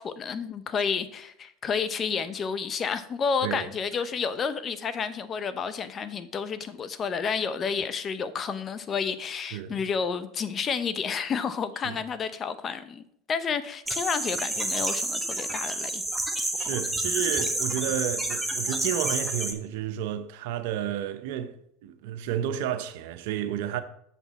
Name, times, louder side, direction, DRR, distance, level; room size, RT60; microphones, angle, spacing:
voice 1, 0.0-16.0, left 6 dB, 35° left, 0.6 m, -30 dB
voice 2, 9.5-9.9 11.8-12.0 16.4-21.5 21.8-23.8, right 10 dB, 70° right, 0.7 m, -31 dB
sound 1, 13.9-19.5, right 1 dB, 5° right, 1.0 m, -29 dB
7.0 x 5.9 x 4.2 m
hypercardioid pair, 95°, 0 cm